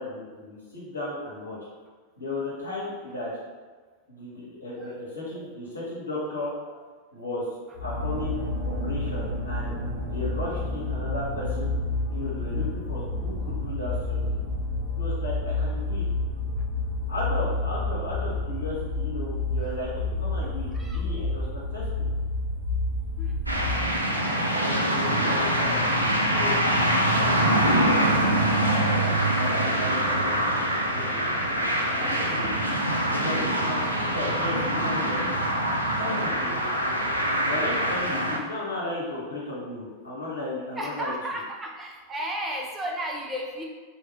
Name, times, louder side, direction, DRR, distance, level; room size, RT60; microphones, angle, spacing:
voice 1, 0.0-1.6 2.2-3.3 4.1-6.5 7.1-7.5 7.8-8.4 8.8-11.7 12.1-14.4 15.0-16.0 17.1-21.4 21.7-21.8 24.6-25.8 26.3-26.6 27.2-30.6 30.9-31.2 32.0-35.4 36.0-36.5 37.4-41.1, left 2 dB, 80° left, -7 dB, 1.1 m, -35 dB
sound 1, 7.7-24.0, left 2 dB, 55° right, 0.8 m, -29 dB
voice 2, 20.7-21.0 23.2-23.4 23.8-23.9 24.1-24.3 24.9-25.8 26.2-26.4 32.9-33.0 40.8-43.6, equal, 15° right, -1 dB, 0.5 m, -35 dB
sound 2, 23.5-38.4, right 1 dB, 85° right, 0.4 m, -24 dB
3.0 x 2.5 x 2.9 m, 1.4 s
figure-of-eight pair, 90°, 0 cm